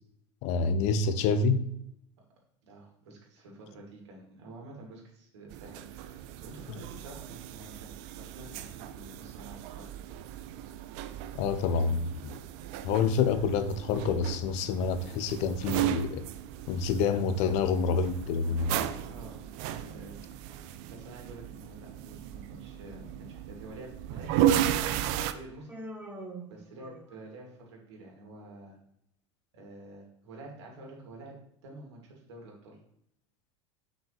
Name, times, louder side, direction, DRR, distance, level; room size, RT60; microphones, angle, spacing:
voice 1, 0.4-1.6 11.3-12.3 12.8-16.2 16.7-18.7, left 5 dB, 50° left, 11 dB, 0.9 m, -27 dB
voice 2, 2.6-10.2 19.0-19.4 19.7-20.5 20.9-25.7 26.5-28.8 29.5-31.3 31.6-32.8, right 2 dB, 65° right, -1 dB, 2.9 m, -49 dB
sound 1, 5.5-25.3, right 11 dB, 50° right, 0.6 m, -35 dB
Human voice, 25.7-27.4, right 1 dB, 10° right, 1.5 m, -44 dB
8.7 x 6.0 x 3.5 m, 0.72 s
figure-of-eight pair, 80°, 15 cm